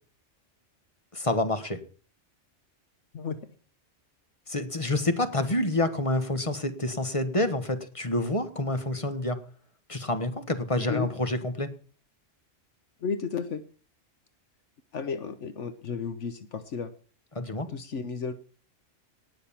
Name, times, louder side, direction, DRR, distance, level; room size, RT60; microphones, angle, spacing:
voice 1, 1.1-1.8 4.5-9.4 9.9-11.7 17.3-17.7, left 2 dB, 25° left, 9 dB, 1.5 m, -28 dB
voice 2, 10.8-11.1 13.0-13.6 14.9-16.9 17.7-18.3, left 6 dB, 75° left, 10 dB, 1.3 m, -33 dB
19.0 x 6.5 x 7.3 m, 0.42 s
omnidirectional pair, 1.3 m